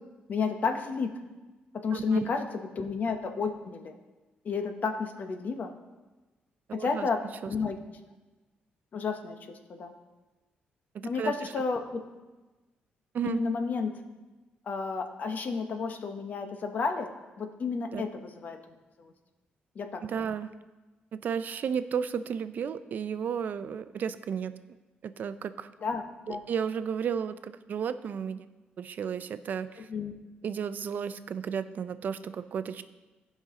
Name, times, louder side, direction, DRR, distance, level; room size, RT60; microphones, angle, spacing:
voice 1, 0.3-1.1 1.8-2.5 2.8-3.9 4.4-5.7 6.7-7.2 7.5-7.8 8.9-9.4 9.7-9.9 11.0-12.0 13.2-13.9 14.7-17.1 17.4-18.6 19.0-19.1 19.7-20.0 25.8-26.4 29.9-30.2, left 5 dB, 55° left, 6 dB, 1.1 m, -31 dB
voice 2, 1.9-2.3 6.7-7.1 7.4-7.5 10.9-11.3 13.1-13.4 17.9-18.0 20.0-20.5 21.1-24.5 25.0-25.7 26.3-28.4 28.8-29.9 30.4-32.8, right 7 dB, 60° right, 13 dB, 0.5 m, -33 dB
15.5 x 5.5 x 3.7 m, 1.2 s
cardioid pair, 100°, 3 cm